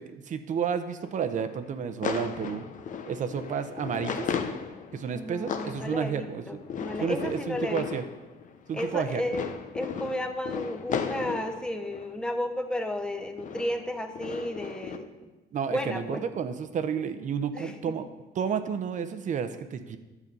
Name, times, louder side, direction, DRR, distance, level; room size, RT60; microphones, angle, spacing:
voice 1, 0.0-2.6 3.1-4.3 4.9-6.4 7.0-8.0 8.7-9.2 15.5-18.1 18.3-20.0, right 7 dB, 50° right, 10 dB, 0.8 m, -31 dB
sound 1, 1.0-12.5 13.1-15.0, left 6 dB, 50° left, 0.8 m, -36 dB
voice 2, 5.1-7.9 8.7-9.5 9.7-15.3 15.7-16.2 17.5-18.0, left 1 dB, 5° left, 4 dB, 1.0 m, -33 dB
11.0 x 7.3 x 5.4 m, 1.1 s
cardioid pair, 110°, 17 cm